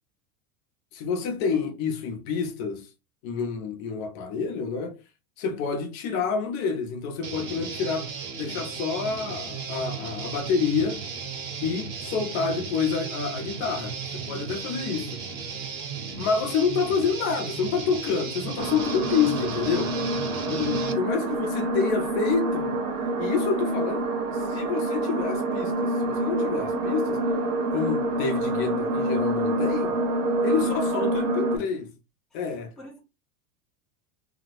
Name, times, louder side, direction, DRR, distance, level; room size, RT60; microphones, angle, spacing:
voice 1, 0.9-2.9 3.2-5.0 5.4-11.1 11.6-15.2 16.2-19.9 20.5-22.8 23.2-24.1 24.3-27.2 27.7-30.0 30.4-31.9 32.3-32.7, left 5 dB, 45° left, 0.7 m, -28 dB
Guitar, 7.2-20.9, right 6 dB, 85° right, 1.3 m, -35 dB
sound 1, 18.6-31.6, right 1 dB, 70° right, 1.0 m, -27 dB
voice 2, 20.4-21.2 30.6-30.8 31.2-31.3 32.8-33.0, left 2 dB, ahead, 0.7 m, -46 dB
2.8 x 2.0 x 4.0 m
supercardioid pair, 155°, 42 cm